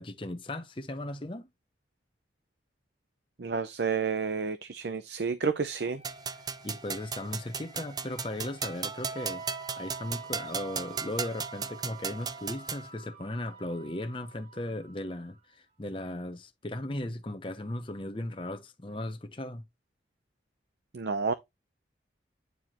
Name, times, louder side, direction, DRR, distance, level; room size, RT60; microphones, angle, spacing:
voice 1, 0.0-1.5 6.6-9.4 9.8-19.6, left 1 dB, 30° left, 0.8 m, -37 dB
voice 2, 3.4-6.0 20.9-21.3, right 5 dB, 70° right, 0.6 m, -30 dB
sound 1, 5.7-15.4, right 6 dB, 35° right, 2.1 m, -49 dB
sound 2, 6.0-12.9, right 5 dB, 20° right, 0.5 m, -37 dB
9.3 x 4.7 x 3.0 m
head